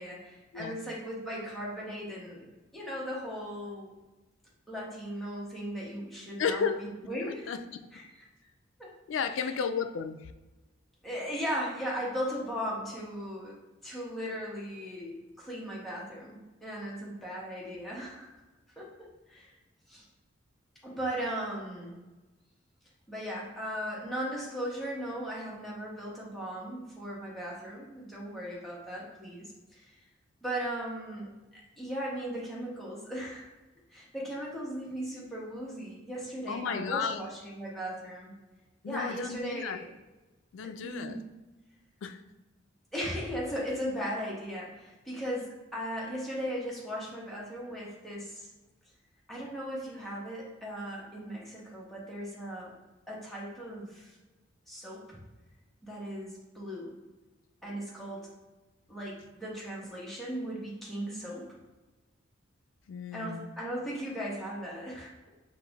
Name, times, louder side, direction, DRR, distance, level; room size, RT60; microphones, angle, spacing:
voice 1, 0.0-3.9 4.7-7.5 7.9-8.0 8.8-8.9 11.0-13.6 13.8-18.3 18.8-19.5 19.9-20.0 20.8-21.9 23.1-29.9 30.4-33.5 33.9-38.3 38.9-39.9 40.8-41.2 42.9-48.5 49.3-52.7 53.1-54.2 54.7-55.2 55.8-56.9 57.6-58.3 58.9-61.5 63.1-65.3, equal, ahead, -6 dB, 1.1 m, -37 dB
voice 2, 6.4-6.8 7.2-7.6 9.1-10.3 36.5-37.2 38.8-39.8 40.5-41.2 42.0-42.2 62.9-63.5, left 6 dB, 75° left, 9 dB, 0.3 m, -33 dB
5.9 x 2.5 x 3.4 m, 1.1 s
head